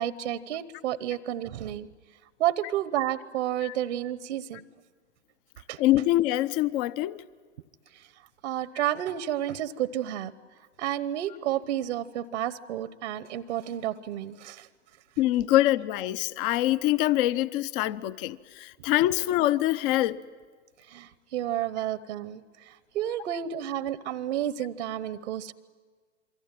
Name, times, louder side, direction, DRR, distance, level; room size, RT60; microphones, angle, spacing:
voice 1, 0.0-1.9 2.4-4.6 5.7-5.8 7.9-8.1 8.4-10.3 10.8-14.7 20.8-25.5, right 12 dB, 70° right, 1.1 m, -31 dB
voice 2, 5.8-7.2 15.2-20.2, left 15 dB, 45° left, 0.9 m, -24 dB
27.0 x 24.0 x 9.1 m
hypercardioid pair, 110°, 36 cm